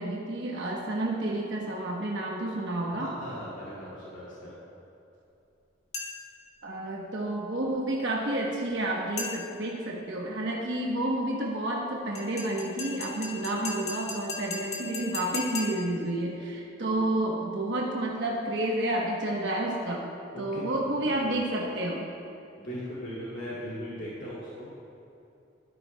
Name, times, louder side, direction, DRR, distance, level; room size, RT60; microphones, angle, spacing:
voice 1, 0.0-3.1 6.6-20.1 20.4-22.1, right 1 dB, 70° right, -2 dB, 1.1 m, -30 dB
voice 2, 2.9-4.6 20.3-21.1 22.6-24.7, equal, 80° left, -8 dB, 2.5 m, -39 dB
sound 1, 5.9-6.4 9.2-9.7 12.1-16.0, left 4 dB, 40° left, 1.6 m, -37 dB
13.5 x 13.0 x 2.2 m, 2.8 s
head